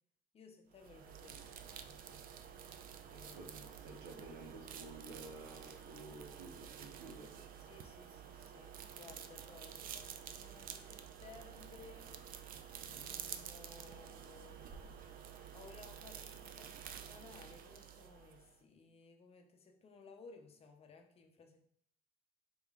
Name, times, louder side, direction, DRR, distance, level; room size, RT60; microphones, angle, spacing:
voice 1, 0.3-2.2 2.9-3.6 7.6-12.2 12.7-15.0 15.5-21.6, left 4 dB, 35° left, 4 dB, 0.7 m, -59 dB
sound 1, 0.7-18.6, right 8 dB, 60° right, 0.4 m, -50 dB
voice 2, 3.1-7.5 12.8-13.1, right 2 dB, 80° right, 1 dB, 1.0 m, -53 dB
4.3 x 3.4 x 2.4 m, 0.66 s
cardioid pair, 110°, 17 cm